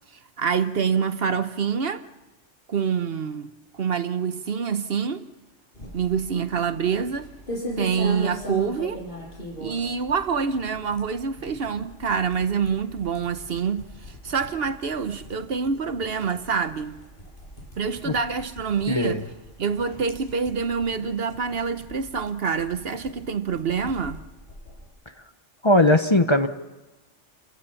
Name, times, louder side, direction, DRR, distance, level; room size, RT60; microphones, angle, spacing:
voice 1, 0.4-2.0 2.7-5.3 5.9-7.3 7.8-9.0 9.6-17.0 17.8-19.2 19.6-24.2, right 6 dB, 55° right, 1.0 m, -26 dB
sound 1, 5.7-24.9, equal, 45° left, 6.7 m, -40 dB
voice 2, 18.9-19.2 25.6-26.5, left 1 dB, 25° left, 0.9 m, -19 dB
29.0 x 15.5 x 7.0 m
omnidirectional pair, 1.2 m